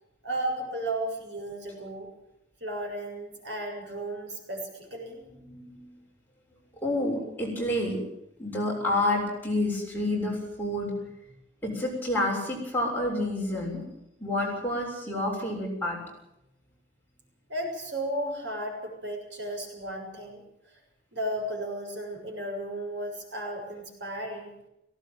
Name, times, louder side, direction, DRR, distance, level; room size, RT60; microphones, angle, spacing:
voice 1, 0.2-2.1 2.6-5.2 17.5-20.4 21.1-24.5, right 1 dB, 65° right, 3 dB, 6.9 m, -34 dB
voice 2, 5.3-5.9 6.8-8.0 8.4-10.9 11.6-13.8 14.2-16.0, left 1 dB, 10° left, -3 dB, 6.9 m, -29 dB
18.5 x 17.5 x 9.3 m, 0.84 s
head